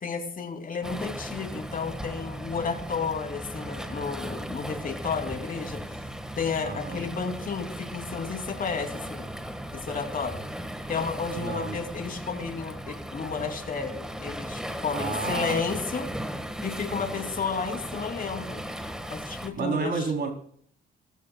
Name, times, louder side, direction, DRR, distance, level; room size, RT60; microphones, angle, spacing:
voice 1, 0.0-5.8 6.4-9.3 9.7-10.4 10.9-16.1 16.6-18.6 19.1-20.1, left 5 dB, 45° left, 4 dB, 2.8 m, -32 dB
Waves surf, 0.8-19.5, equal, 5° right, 1.6 m, -37 dB
voice 2, 6.6-7.0 11.3-11.8 14.9-15.6 16.9-17.3 19.6-20.3, right 4 dB, 55° right, 3 dB, 3.5 m, -31 dB
19.5 x 15.0 x 2.3 m, 0.62 s
cardioid pair, 90°, 20 cm